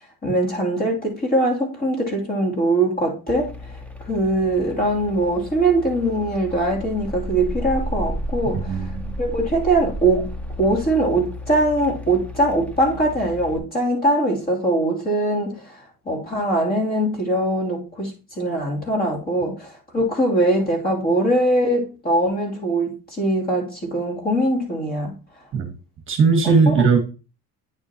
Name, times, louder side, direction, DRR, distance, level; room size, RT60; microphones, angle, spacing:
voice 1, 0.2-3.5 4.1-8.9 9.2-10.3 10.6-15.8 16.0-18.1 18.4-25.1 26.4-26.7, right 1 dB, 25° left, 2.8 m, -22 dB
sound 1, 3.3-13.6, equal, 5° left, 0.7 m, -33 dB
voice 2, 8.7-9.1 25.5-25.7 26.1-27.0, right 5 dB, 35° right, 1.3 m, -18 dB
9.4 x 6.8 x 2.9 m
cardioid pair, 150°, 36 cm